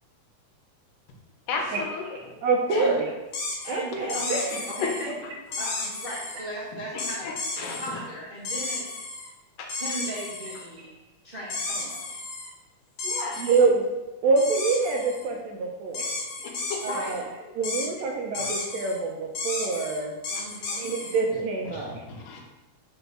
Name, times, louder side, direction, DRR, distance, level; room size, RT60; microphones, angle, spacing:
voice 1, 1.5-2.0 2.7-2.9 4.8-4.9 6.9-7.8 9.6-9.7 13.0-13.4 18.4-18.5 21.7-22.4, left 4 dB, 90° left, 1 dB, 2.7 m, -34 dB
voice 2, 2.1-3.1 3.7-4.4 13.4-13.9 14.2-16.0 16.8-17.2 17.5-20.1 20.6-22.1, right 4 dB, 75° right, 1 dB, 1.7 m, -26 dB
sound 1, 3.3-3.7 4.1-5.1 5.5-6.4 7.0-7.9 8.4-9.3 9.7-10.6 11.5-12.5 13.0-13.6 14.4-15.2 15.9-17.2 17.6-17.9 18.3-19.0 19.3-21.2, left 3 dB, 60° left, 1.5 m, -33 dB
voice 3, 3.6-5.1 5.6-7.3 7.6-9.0 9.8-10.9 11.2-12.1 16.8-17.2 20.3-20.9, right 1 dB, 40° right, -8 dB, 0.7 m, -37 dB
5.3 x 4.5 x 6.0 m, 1.0 s
omnidirectional pair, 3.6 m